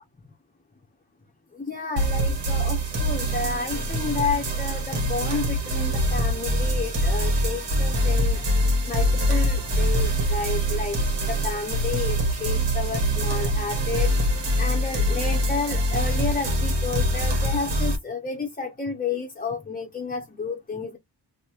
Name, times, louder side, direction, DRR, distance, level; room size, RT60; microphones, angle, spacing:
voice 1, 1.5-8.4 8.9-21.0, left 4 dB, 20° left, 0.9 m, -31 dB
sound 1, 2.0-18.0, equal, 75° right, 1.6 m, -24 dB
2.9 x 2.9 x 2.4 m
cardioid pair, 70°, 42 cm